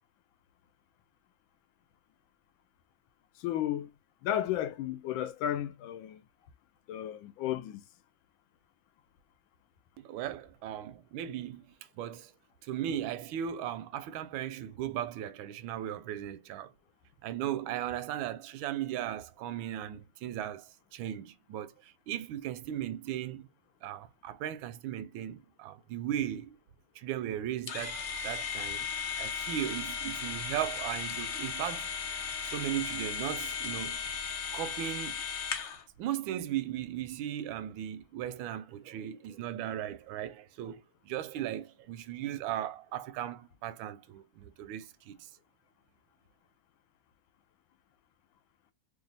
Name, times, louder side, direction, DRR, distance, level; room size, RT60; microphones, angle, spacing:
voice 1, 3.4-3.9 4.2-6.2 6.9-7.8, left 11 dB, 90° left, 1.4 m, -33 dB
voice 2, 10.0-12.3 12.6-16.7 17.2-23.5 23.8-26.6 26.9-28.9 29.2-31.9 32.4-34.0 34.5-35.2 36.0-45.3, right 11 dB, 85° right, 1.3 m, -37 dB
sound 1, 27.7-35.8, left 6 dB, 65° left, 0.7 m, -36 dB
3.3 x 2.5 x 3.9 m
omnidirectional pair, 2.1 m